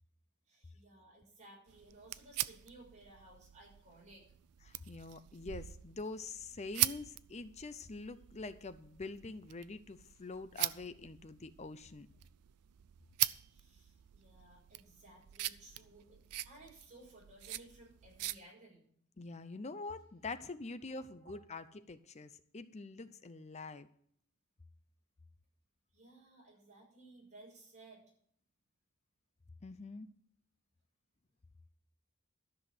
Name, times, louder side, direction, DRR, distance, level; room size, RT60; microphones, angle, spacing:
voice 1, 0.5-4.3 13.4-18.9 21.1-21.3 25.9-28.0, right 2 dB, 35° right, -3 dB, 6.2 m, -58 dB
sound 1, 1.7-18.4, right 16 dB, 90° right, 0.5 m, -42 dB
voice 2, 4.7-12.1 19.2-23.9 29.6-30.1, left 3 dB, 30° left, 13 dB, 0.6 m, -45 dB
13.0 x 6.2 x 7.6 m, 0.63 s
head